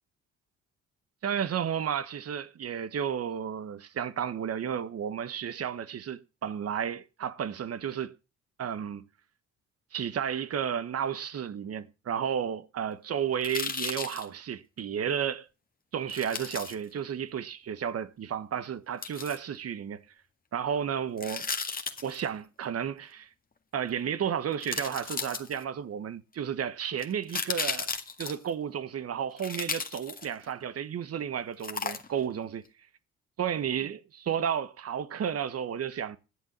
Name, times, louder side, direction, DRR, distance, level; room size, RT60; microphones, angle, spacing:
voice 1, 1.2-8.1 8.6-9.0 9.9-15.5 15.9-20.0 20.5-21.5 22.0-23.3 23.7-27.9 28.2-32.6 33.4-36.2, right 8 dB, 50° right, 1.2 m, -32 dB
sound 1, 13.4-14.3 16.1-16.7 19.0-19.4 21.2-22.3 23.9-24.0 24.6-25.8 27.0-28.5 29.4-30.5 31.6-32.3 32.7-32.8, left 4 dB, 30° left, 1.8 m, -35 dB
11.5 x 7.6 x 7.4 m
cardioid pair, 90°, 30 cm